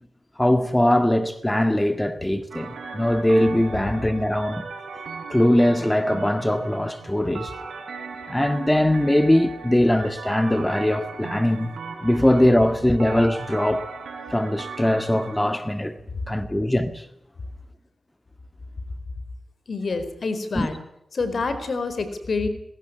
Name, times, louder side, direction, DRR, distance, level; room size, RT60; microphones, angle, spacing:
voice 1, 0.4-4.6 5.3-7.5 8.3-11.7 12.0-13.9 14.3-15.9 16.3-17.0 20.5-20.7, left 1 dB, 15° left, 1.8 m, -21 dB
sound 1, 2.5-15.4, right 4 dB, 85° right, 3.6 m, -38 dB
voice 2, 19.7-20.8 21.1-22.5, left 4 dB, 65° left, 4.3 m, -27 dB
19.0 x 17.0 x 10.0 m
cardioid pair, 45°, 0 cm